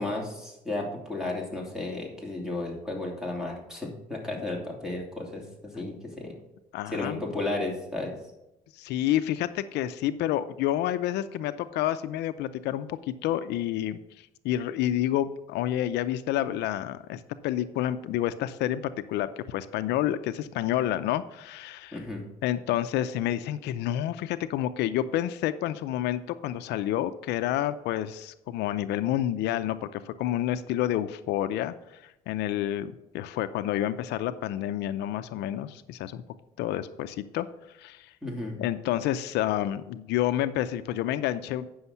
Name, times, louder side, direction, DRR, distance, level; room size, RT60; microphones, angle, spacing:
voice 1, 0.0-6.3 6.9-8.1 21.9-22.2 38.2-38.6, left 2 dB, 5° right, -1 dB, 3.0 m, -33 dB
voice 2, 6.7-7.2 8.8-18.8 19.1-22.0 22.4-31.7 32.0-36.2 36.6-37.5 37.8-38.1 38.6-41.8, left 12 dB, 80° left, 12 dB, 0.6 m, -29 dB
9.6 x 6.3 x 5.7 m, 0.90 s
cardioid pair, 110°, 17 cm